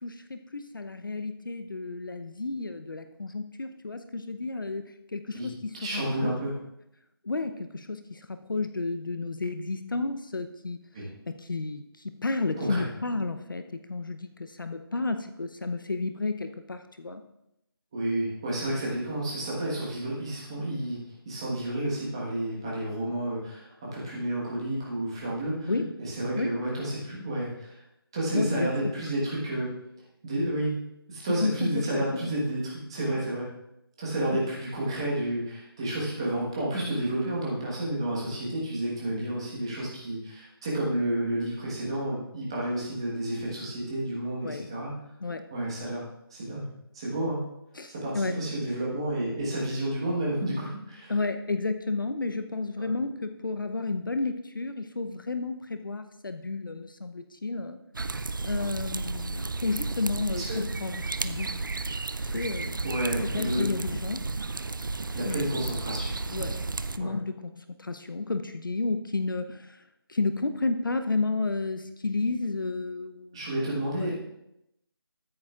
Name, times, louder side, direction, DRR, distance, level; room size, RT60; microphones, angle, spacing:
voice 1, 0.0-4.8 5.1-6.4 7.2-10.8 11.3-17.2 25.7-25.9 26.4-26.5 28.3-28.7 31.4-32.3 34.3-34.5 44.4-44.7 45.2-45.4 47.7-48.4 51.1-57.8 58.4-61.6 62.2-62.8 63.3-64.2 65.2-65.4 66.3-66.7 67.0-69.8 70.1-73.4 73.9-74.1, left 3 dB, 55° left, 8 dB, 0.7 m, -32 dB
voice 2, 5.8-6.5 10.9-11.1 12.6-12.8 17.9-21.0 21.2-25.7 26.0-27.8 28.1-29.7 30.2-30.8 31.1-33.5 34.0-44.9 45.5-46.0 46.3-46.7 46.9-47.4 47.9-51.1 52.8-52.9 58.5-58.6 60.3-60.6 62.8-63.7 65.1-66.1 67.0-67.1 73.3-74.2, right 1 dB, 10° right, -6 dB, 1.3 m, -30 dB
bonfire in garden, 57.9-67.0, right 3 dB, 55° right, 0.4 m, -33 dB
13.5 x 9.8 x 2.4 m, 0.83 s
figure-of-eight pair, 175°, 13 cm